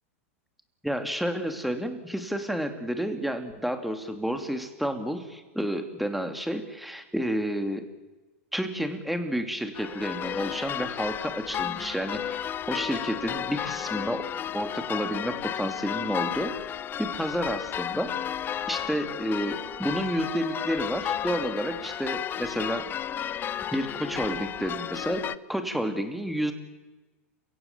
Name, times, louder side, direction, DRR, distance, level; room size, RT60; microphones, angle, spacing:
voice 1, 0.8-7.9 8.5-12.4 12.7-14.2 14.5-16.5 17.0-18.1 18.7-22.9 23.7-26.5, equal, ahead, 7 dB, 2.7 m, -30 dB
sound 1, 9.8-25.4, left 10 dB, 25° left, 0.7 m, -33 dB
30.0 x 16.5 x 7.4 m, 1.2 s
hypercardioid pair, 110°, 8 cm